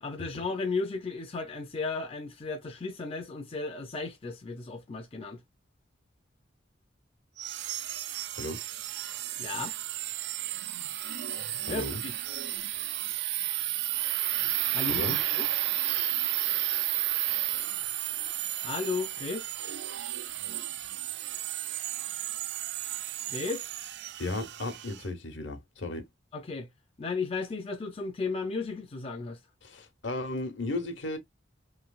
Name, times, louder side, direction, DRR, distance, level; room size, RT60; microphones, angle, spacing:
voice 1, 0.0-5.4 9.4-9.8 11.7-12.1 14.7-15.5 18.6-19.5 23.3-23.7 26.3-26.7 27.0-29.4, left 4 dB, 30° left, 0.4 m, -34 dB
sound 1, 7.4-25.0, right 14 dB, 60° right, 0.3 m, -32 dB
voice 2, 11.7-12.0 14.9-15.2 24.2-26.1 29.6-31.2, left 2 dB, 70° left, 0.9 m, -35 dB
3.1 x 2.7 x 2.3 m
head